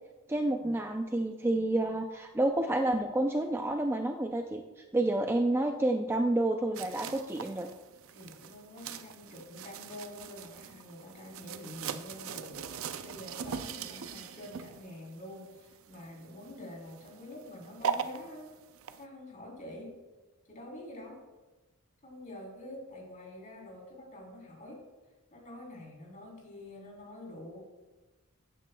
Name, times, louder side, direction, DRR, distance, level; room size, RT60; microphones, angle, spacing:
voice 1, 0.3-4.6 4.9-7.7, right 1 dB, 10° right, 4 dB, 0.4 m, -29 dB
sound 1, 6.7-19.0, right 6 dB, 65° right, 0.5 m, -41 dB
voice 2, 8.1-18.5 19.0-20.0 20.5-21.2 22.0-24.8 25.3-27.6, left 1 dB, 35° left, -2 dB, 3.6 m, -47 dB
15.5 x 9.1 x 2.3 m, 1.2 s
head